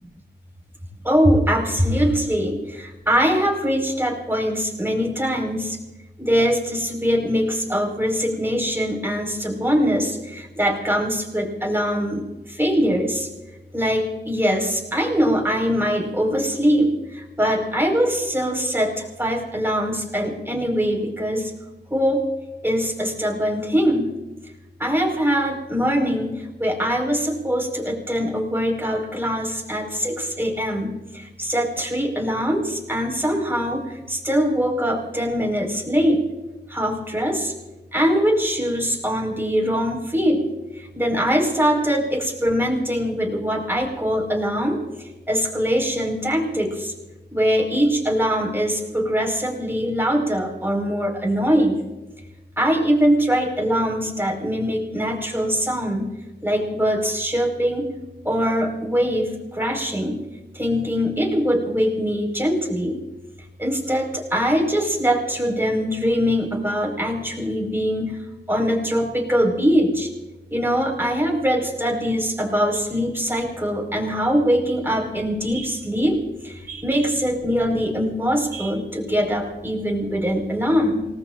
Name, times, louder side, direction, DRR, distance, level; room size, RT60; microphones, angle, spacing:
voice 1, 1.0-5.8 6.2-13.3 13.7-21.5 21.9-22.2 22.6-24.1 24.8-36.2 36.7-37.5 37.9-40.4 40.7-46.9 47.3-51.8 52.6-56.1 56.4-57.9 58.2-60.2 60.5-63.0 63.6-68.2 68.5-70.1 70.5-81.1, equal, 10° right, 0 dB, 5.0 m, -22 dB
28.5 x 19.5 x 2.6 m, 1.1 s
wide cardioid pair, 65°, 18 cm